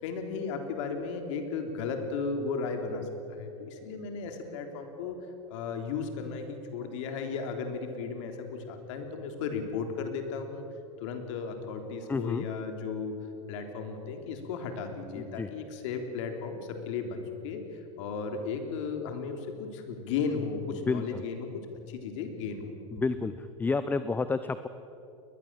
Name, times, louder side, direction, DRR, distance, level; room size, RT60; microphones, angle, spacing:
voice 1, 0.0-5.2 5.5-10.6 11.0-13.2 13.5-21.5 21.9-22.8, left 5 dB, 65° left, 5 dB, 3.6 m, -35 dB
voice 2, 12.1-12.5 15.2-15.5 20.9-21.2 22.9-24.7, left 4 dB, 10° left, 12 dB, 0.6 m, -30 dB
21.5 x 20.5 x 7.6 m, 2.8 s
supercardioid pair, 135°, 17 cm